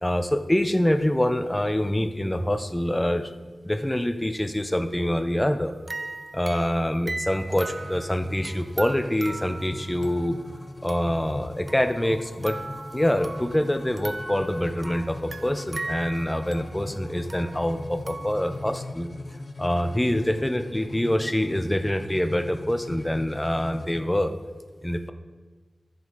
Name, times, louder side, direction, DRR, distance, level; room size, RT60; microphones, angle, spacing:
voice 1, 0.0-3.3 3.6-5.7 6.3-10.3 10.8-12.6 12.9-19.1 19.6-24.3 24.8-25.1, left 1 dB, 15° left, 8 dB, 0.7 m, -25 dB
sound 1, 5.7-11.3 11.7-13.7 14.0-18.8, right 2 dB, 55° right, 0.4 m, -39 dB
sound 2, 7.4-24.0, left 2 dB, 55° left, 0.7 m, -41 dB
13.0 x 5.3 x 4.0 m, 1.4 s
cardioid pair, 50°, 0 cm